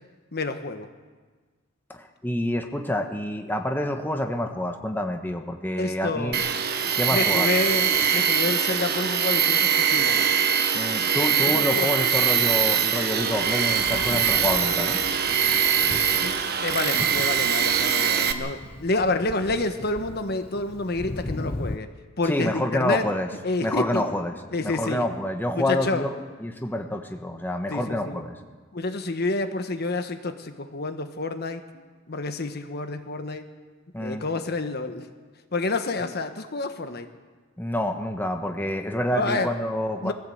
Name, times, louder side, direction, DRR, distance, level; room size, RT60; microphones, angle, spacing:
voice 1, 0.3-0.9 5.8-6.4 7.1-10.2 11.5-12.1 15.8-21.9 22.2-23.1 23.4-24.0 24.5-25.0 25.6-26.0 27.7-28.2 28.7-31.6 32.1-33.4 34.0-35.0 35.5-37.1 39.1-39.5 40.0-40.1, left 2 dB, 55° left, 8 dB, 1.3 m, -29 dB
voice 2, 1.9-6.4 6.9-7.5 10.7-15.0 22.2-23.3 23.6-24.3 24.6-28.4 33.9-34.2 37.6-40.1, left 1 dB, 10° left, 4 dB, 1.2 m, -28 dB
Tools, 6.3-18.3, right 8 dB, 55° right, 1.3 m, -22 dB
Thunder, 12.5-21.8, left 2 dB, 30° left, 0.7 m, -39 dB
21.5 x 15.5 x 7.9 m, 1.4 s
head